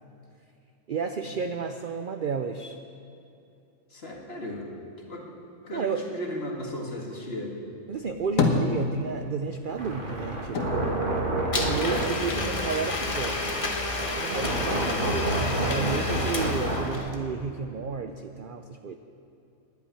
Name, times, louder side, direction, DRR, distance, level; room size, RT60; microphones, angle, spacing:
voice 1, 0.9-2.8 5.7-6.0 7.9-11.0 11.7-13.7 14.2-19.0, right 5 dB, 60° right, 6 dB, 0.5 m, -32 dB
voice 2, 3.9-4.7 5.1-5.2 5.6-7.6 12.3-12.6 15.7-15.9, left 1 dB, 50° left, 0 dB, 1.9 m, -35 dB
sound 1, 7.9-9.4 9.7-12.1 12.5-13.4, left 4 dB, 80° left, 1.6 m, -29 dB
sound 2, 9.8-17.0, right 1 dB, 35° right, 1.9 m, -29 dB
Domestic sounds home sounds, 11.5-17.2, left 2 dB, 30° left, 0.9 m, -31 dB
10.5 x 8.5 x 9.5 m, 2.7 s
omnidirectional pair, 1.4 m